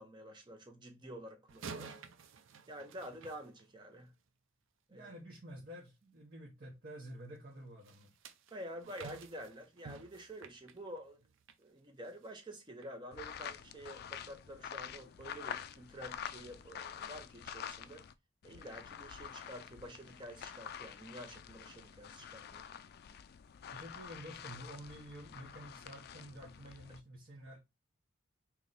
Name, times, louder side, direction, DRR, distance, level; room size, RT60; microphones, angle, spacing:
voice 1, 0.0-1.9 2.7-4.1 4.9-5.1 8.5-11.2 11.6-18.0 18.4-22.6, equal, 25° right, 0.7 m, -49 dB
sound 1, 1.5-4.1 7.8-11.6 12.0-12.3 12.8-12.9, right 5 dB, 70° right, 0.5 m, -51 dB
voice 2, 4.9-8.1 23.7-27.6, right 1 dB, 50° right, 1.1 m, -50 dB
sound 2, 13.1-18.1 18.4-27.0, left 8 dB, 50° left, 0.3 m, -47 dB
3.1 x 3.0 x 3.9 m
head